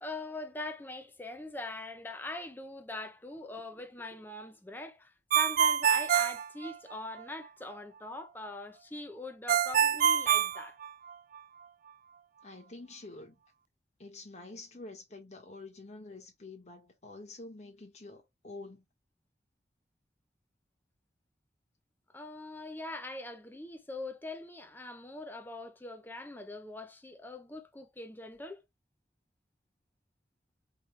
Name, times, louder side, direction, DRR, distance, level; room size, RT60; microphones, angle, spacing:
voice 1, 0.0-10.8 22.1-28.6, left 2 dB, 10° left, 0.7 m, -42 dB
Ringtone, 5.3-7.2 9.5-11.4, right 9 dB, 50° right, 0.3 m, -26 dB
voice 2, 12.4-13.4 14.0-18.8, left 2 dB, 40° left, 1.4 m, -47 dB
4.8 x 3.3 x 3.3 m
head